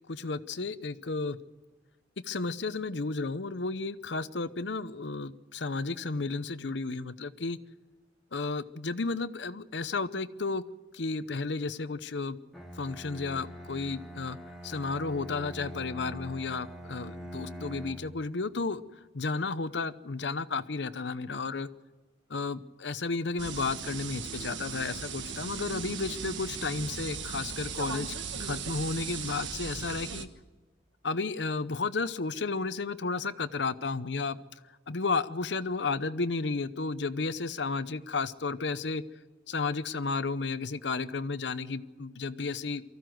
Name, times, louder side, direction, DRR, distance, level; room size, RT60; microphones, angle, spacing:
voice 1, 0.1-1.4 2.3-7.6 8.3-10.6 10.9-12.4 12.8-14.4 14.6-18.8 19.1-21.7 22.3-28.1 28.4-30.3 31.0-34.4 34.9-39.0 39.5-42.8, left 3 dB, 70° left, 14 dB, 0.8 m, -33 dB
Bowed string instrument, 12.5-18.2, equal, ahead, 1.9 m, -44 dB
sound 1, 23.4-30.2, right 6 dB, 80° right, 1.4 m, -38 dB
24.0 x 15.0 x 7.8 m, 1.3 s
head